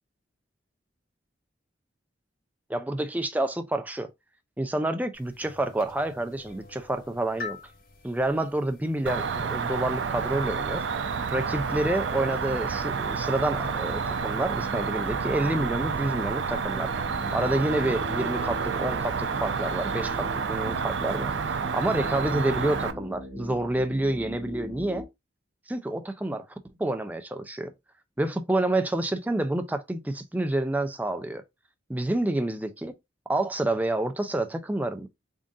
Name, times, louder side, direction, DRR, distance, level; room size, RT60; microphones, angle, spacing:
voice 1, 2.7-4.1 4.6-7.6 8.0-10.9 11.3-16.9 17.3-21.3 21.7-25.0 25.7-26.5 26.8-27.7 28.2-31.4 31.9-32.9 33.3-35.1, right 1 dB, 10° right, 0.4 m, -28 dB
sound 1, 5.1-21.2, left 4 dB, 50° left, 0.7 m, -50 dB
Cricket, 9.1-22.9, right 5 dB, 75° right, 0.5 m, -29 dB
sound 2, 11.7-25.1, left 1 dB, 55° right, 1.3 m, -42 dB
3.8 x 2.6 x 3.6 m
head